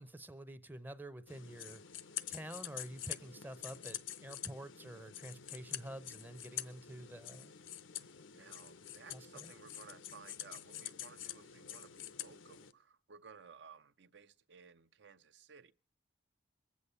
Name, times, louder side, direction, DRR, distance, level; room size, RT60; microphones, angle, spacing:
voice 1, 0.0-1.8 2.3-7.5 9.1-9.5, right 1 dB, 10° right, 0.6 m, -48 dB
sound 1, 1.3-12.7, left 11 dB, 85° left, 0.7 m, -47 dB
voice 2, 8.3-15.7, right 5 dB, 65° right, 0.6 m, -57 dB
22.0 x 8.4 x 5.4 m
head